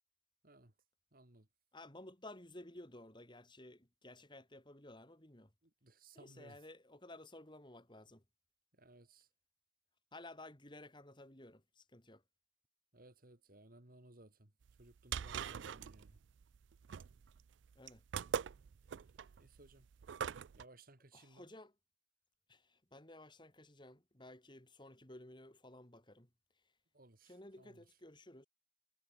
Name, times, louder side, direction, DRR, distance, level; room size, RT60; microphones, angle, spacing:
voice 1, 1.1-1.5 5.8-6.6 8.8-9.3 12.9-14.5 14.8-16.2 19.4-19.9 20.5-21.5 26.9-27.8, right 2 dB, 50° right, 2.9 m, -61 dB
voice 2, 1.7-5.5 6.1-8.2 10.1-12.2 17.8-18.0 21.1-21.7 22.5-26.3 27.2-28.5, left 1 dB, 25° left, 3.8 m, -55 dB
sound 1, 14.7-20.6, right 7 dB, 85° right, 0.4 m, -43 dB
head